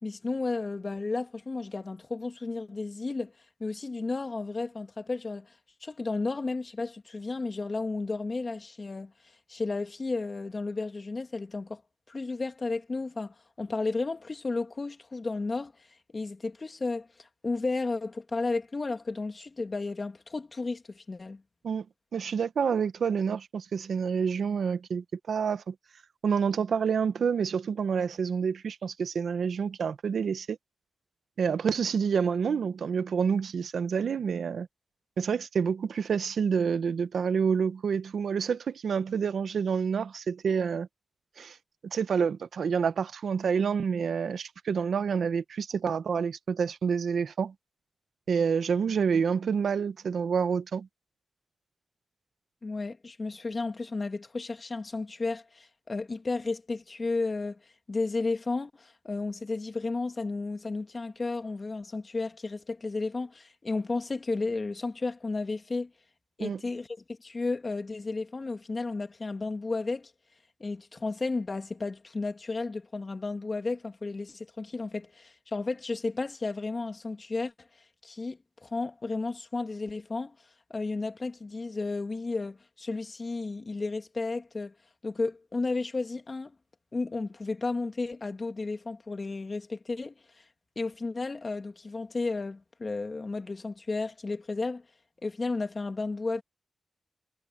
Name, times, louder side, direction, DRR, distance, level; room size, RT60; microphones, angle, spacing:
voice 1, 0.0-3.3 3.6-5.5 5.8-9.1 9.5-11.8 12.1-15.9 16.1-21.4 52.6-57.6 57.9-65.9 66.4-66.9 67.2-70.1 70.6-77.5 78.0-80.3 80.7-84.7 85.0-86.5 86.9-90.4 90.8-94.8 95.2-96.4, left 3 dB, 35° left, 2.5 m, -33 dB
voice 2, 22.1-25.7 26.2-30.6 31.4-34.7 35.2-40.9 41.4-41.6 41.8-47.5 48.3-50.9 66.4-66.6, right 6 dB, 75° right, 1.0 m, -28 dB
cardioid pair, 85°, 0 cm